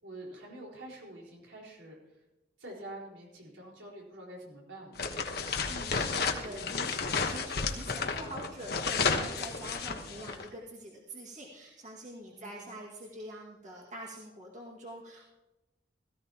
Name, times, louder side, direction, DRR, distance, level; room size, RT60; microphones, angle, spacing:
voice 1, 0.0-2.0 2.6-5.0 6.4-6.8 12.3-12.8, right 1 dB, 75° right, -2 dB, 4.6 m, -47 dB
sound 1, 5.0-10.4, left 5 dB, 55° left, 1.2 m, -32 dB
voice 2, 5.7-15.3, right 1 dB, 40° right, -3 dB, 2.0 m, -45 dB
17.0 x 15.0 x 3.0 m, 0.98 s
head